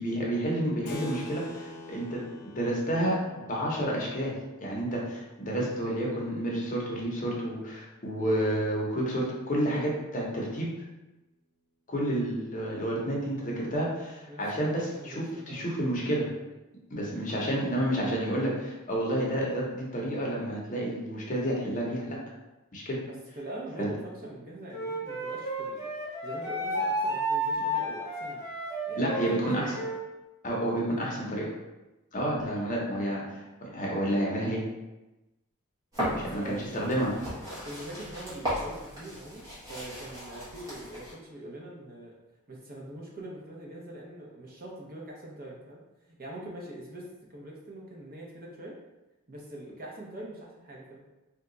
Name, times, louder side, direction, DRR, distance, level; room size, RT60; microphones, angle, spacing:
voice 1, 0.0-2.2 2.5-10.8 11.9-16.3 16.9-22.2 22.7-23.0 23.8-23.9 29.0-29.8 30.4-31.5 32.1-34.6 36.3-37.1, right 1 dB, 35° left, -3 dB, 0.7 m, -30 dB
Keyboard (musical), 0.9-6.9, equal, 70° left, 0.5 m, -46 dB
voice 2, 14.3-14.7 15.0-15.6 22.9-25.9 26.2-28.5 28.9-29.8 30.5-31.2 36.1-36.9 37.5-42.1 42.5-45.8 46.1-48.8 49.3-51.0, right 1 dB, 40° right, -2 dB, 0.7 m, -43 dB
Wind instrument woodwind instrument, 24.7-30.0, right 1 dB, 15° left, 1.0 m, -32 dB
sound 1, 35.9-41.1, equal, 15° right, 1.4 m, -36 dB
2.8 x 2.2 x 3.8 m, 1.0 s
head